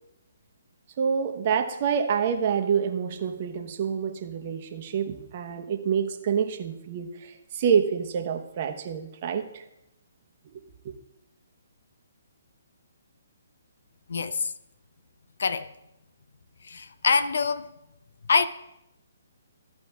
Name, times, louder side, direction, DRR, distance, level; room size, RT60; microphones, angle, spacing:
voice 1, 1.0-9.6 10.5-10.6 10.8-10.9, right 7 dB, 40° right, 1.1 m, -27 dB
voice 2, 14.1-14.5 15.4-15.7 16.6-17.7 18.3-18.5, left 5 dB, 65° left, 0.6 m, -25 dB
15.0 x 5.2 x 3.6 m
figure-of-eight pair, 140°, 0 cm